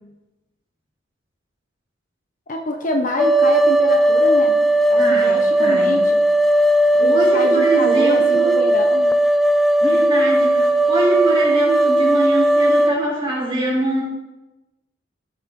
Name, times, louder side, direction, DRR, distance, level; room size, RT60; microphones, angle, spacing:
voice 1, 2.5-6.2 6.9-9.1, left 1 dB, 40° left, 3 dB, 0.9 m, -26 dB
sound 1, 3.2-13.0, right 1 dB, ahead, 0.5 m, -16 dB
voice 2, 5.0-6.0 7.0-8.6 9.8-14.0, right 1 dB, 25° right, -5 dB, 4.3 m, -23 dB
16.5 x 6.8 x 3.7 m, 1.1 s
head